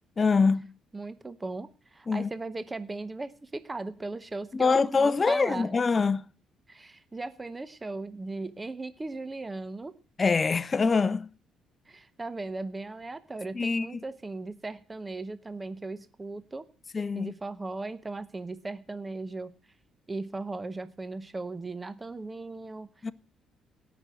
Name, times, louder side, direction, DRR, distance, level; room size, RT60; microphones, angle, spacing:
voice 1, 0.2-0.7 2.1-2.3 4.5-6.2 10.2-11.3 13.5-13.9 16.9-17.3 23.0-23.1, left 4 dB, 30° left, 0.5 m, -24 dB
voice 2, 0.9-5.7 6.7-9.9 11.9-16.6 17.1-19.5 20.1-23.1, right 3 dB, 20° right, 0.8 m, -37 dB
17.5 x 6.1 x 7.8 m
cardioid pair, 105°, 0 cm